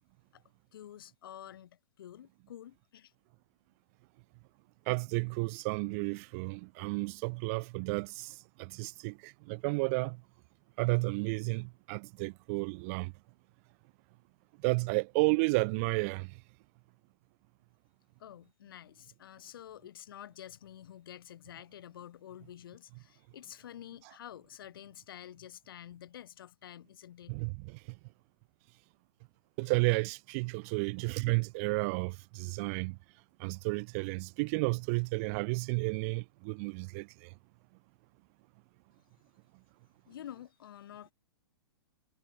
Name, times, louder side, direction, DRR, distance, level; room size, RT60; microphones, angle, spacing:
voice 1, 0.7-3.1 18.2-27.4 40.1-41.1, left 11 dB, 60° left, 4.1 m, -49 dB
voice 2, 4.9-10.2 10.8-13.1 14.6-16.3 27.3-27.8 29.6-33.0 33.4-37.3, right 30 dB, 35° right, 0.4 m, -32 dB
figure-of-eight pair, 110°, 14 cm